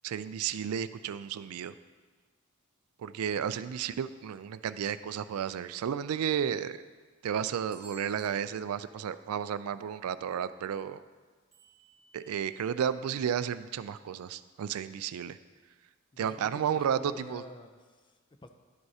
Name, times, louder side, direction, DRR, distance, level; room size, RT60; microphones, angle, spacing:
voice 1, 0.0-1.7 3.0-6.8 7.2-11.0 12.1-15.4 16.2-17.4, right 8 dB, 90° right, 13 dB, 0.3 m, -32 dB
sound 1, 7.7-9.2 9.8-9.9 11.5-12.6, right 2 dB, 30° right, 1.6 m, -57 dB
voice 2, 16.1-18.5, left 2 dB, 20° left, 7 dB, 0.5 m, -50 dB
11.5 x 7.8 x 2.8 m, 1.4 s
head